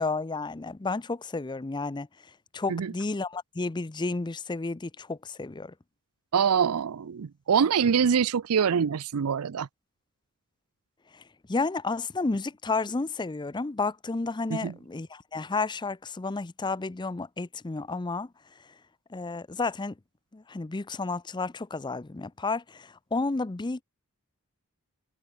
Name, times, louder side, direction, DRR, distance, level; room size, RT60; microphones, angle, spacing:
voice 1, 0.0-2.1 2.5-5.7 11.1-11.2 11.5-18.3 19.1-19.9 20.3-23.8, left 3 dB, 20° left, 0.5 m, -31 dB
voice 2, 6.3-9.7 14.5-14.7, right 7 dB, 75° right, 0.5 m, -24 dB
head